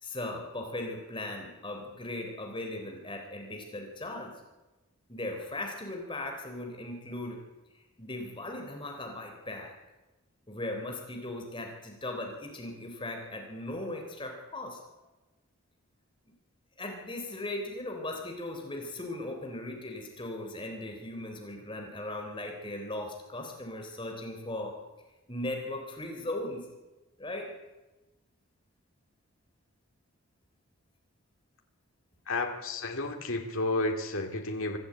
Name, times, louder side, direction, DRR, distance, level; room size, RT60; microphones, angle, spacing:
voice 1, 0.0-4.3 5.1-7.4 8.0-9.7 10.5-14.8 16.3-16.4 16.8-24.7 25.3-26.6 27.2-27.5, left 1 dB, 20° left, 2 dB, 3.6 m, -38 dB
voice 2, 32.3-34.8, left 2 dB, 70° left, 2 dB, 2.8 m, -31 dB
24.5 x 14.5 x 8.8 m, 1.1 s
head